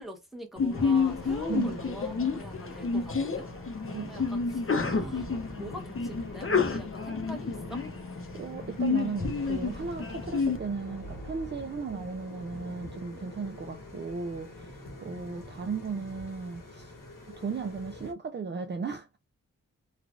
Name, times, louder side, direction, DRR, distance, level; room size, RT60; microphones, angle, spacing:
voice 1, 0.0-3.5 3.8-7.8, equal, ahead, 1.0 m, -43 dB
Sneeze, 0.6-10.6, left 5 dB, 40° left, 0.7 m, -30 dB
sound 1, 0.7-18.1, left 2 dB, 90° left, 1.5 m, -44 dB
voice 2, 1.5-1.8 3.9-4.3 8.3-16.9 17.3-19.2, right 5 dB, 35° right, 0.4 m, -36 dB
3.2 x 2.4 x 2.4 m
wide cardioid pair, 70°, 32 cm